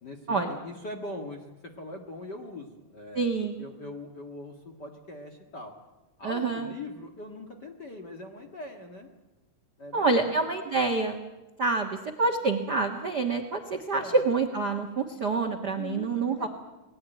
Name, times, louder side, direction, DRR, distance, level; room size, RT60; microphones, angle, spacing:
voice 1, 0.0-1.4 1.8-5.7 6.2-9.1 9.8-10.3 13.9-14.2 15.7-16.5, left 2 dB, 40° left, 3 dB, 1.6 m, -41 dB
voice 2, 3.1-3.6 6.2-6.7 9.9-11.2 11.6-16.5, right 3 dB, 70° right, 3 dB, 0.9 m, -27 dB
28.5 x 20.0 x 9.1 m, 1.1 s
omnidirectional pair, 4.4 m